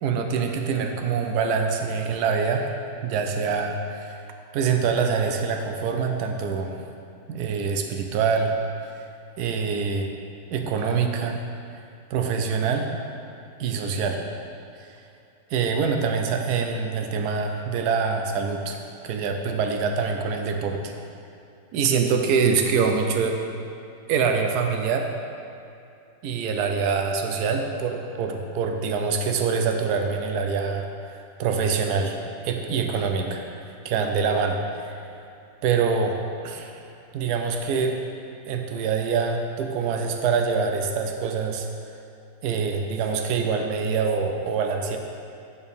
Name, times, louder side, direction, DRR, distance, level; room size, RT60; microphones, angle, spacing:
voice 1, 0.0-2.7 3.0-4.2 4.5-6.7 7.3-8.5 9.4-10.1 10.5-11.4 12.1-12.9 13.6-14.2 14.8-14.9 15.5-18.8 19.0-20.8 21.7-23.4 24.1-25.1 26.2-32.2 32.4-35.1 35.6-36.2 36.4-36.8 37.1-38.0 38.5-41.7 42.4-45.0, right 5 dB, 75° right, 4 dB, 1.1 m, -25 dB
8.9 x 4.4 x 3.4 m, 2.6 s
omnidirectional pair, 1.9 m